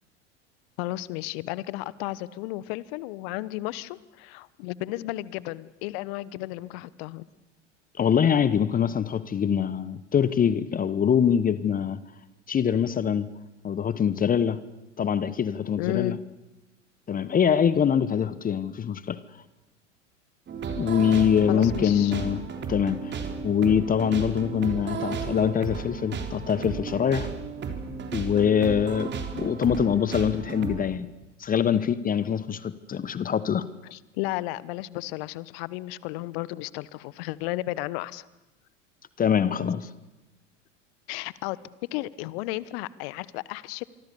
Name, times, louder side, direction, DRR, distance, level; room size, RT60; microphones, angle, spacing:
voice 1, 0.8-7.3 15.8-16.2 21.5-22.1 33.9-38.3 41.1-41.6 41.9-43.8, left 17 dB, 55° left, 1.1 m, -33 dB
voice 2, 8.0-12.0 12.5-13.3 13.6-14.6 15.0-16.1 17.1-19.2 20.7-22.4 22.7-23.1 23.4-27.3 28.1-31.1 31.4-33.7 39.2-39.9, left 8 dB, 25° left, 1.1 m, -24 dB
sound 1, 20.5-30.8, right 5 dB, 30° right, 3.7 m, -34 dB
26.0 x 24.5 x 7.0 m
figure-of-eight pair, 85°, 37 cm